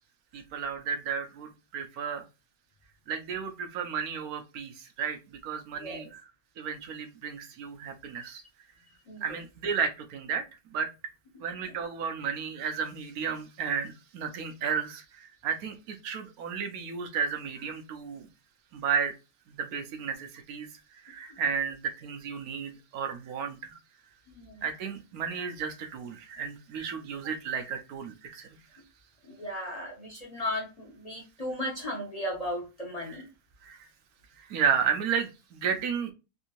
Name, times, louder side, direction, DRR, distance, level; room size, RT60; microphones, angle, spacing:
voice 1, 0.3-2.2 3.1-6.2 6.6-8.4 9.2-10.4 10.7-10.9 11.4-18.3 18.7-19.1 19.5-20.7 20.9-23.8 24.6-28.6 33.1-33.2 33.6-33.9 34.4-36.1, right 6 dB, 80° right, 1.1 m, -33 dB
voice 2, 9.1-9.4 11.7-11.8 21.3-21.4 24.3-24.6 29.2-33.3, left 1 dB, 35° left, 0.6 m, -36 dB
3.4 x 2.7 x 2.9 m
omnidirectional pair, 1.6 m